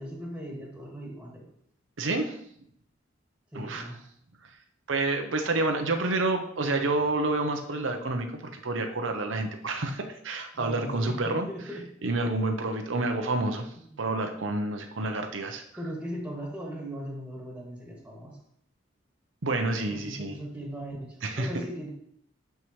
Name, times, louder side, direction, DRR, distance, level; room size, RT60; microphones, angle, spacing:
voice 1, 0.0-1.4 3.5-4.0 10.5-11.9 13.8-14.0 15.8-18.4 19.9-21.0 21.4-21.9, equal, 5° right, -2 dB, 2.1 m, -38 dB
voice 2, 2.0-2.4 3.5-3.9 4.9-11.5 12.0-15.6 19.4-20.3 21.2-21.5, right 2 dB, 80° right, 4 dB, 0.8 m, -29 dB
12.0 x 4.7 x 3.2 m, 0.68 s
head